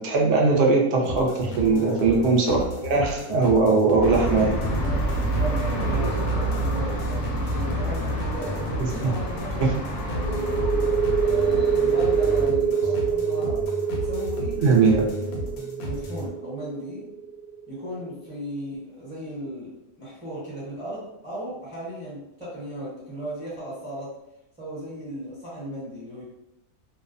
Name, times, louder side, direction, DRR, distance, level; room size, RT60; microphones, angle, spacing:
voice 1, 0.0-4.6 9.6-9.7 14.6-15.1, right 4 dB, 65° right, -1 dB, 0.7 m, -20 dB
sound 1, 1.0-16.3, left 1 dB, 80° left, 1.1 m, -34 dB
voice 2, 1.6-2.2 5.3-10.6 11.2-14.6 15.2-17.1 17.7-24.1 24.6-26.3, right 1 dB, 5° right, -8 dB, 0.7 m, -36 dB
sound 2, 4.0-12.4, right 1 dB, 65° left, 0.8 m, -28 dB
sound 3, 10.2-17.6, right 6 dB, 40° left, 0.5 m, -25 dB
2.5 x 2.1 x 2.4 m, 0.86 s
omnidirectional pair, 1.5 m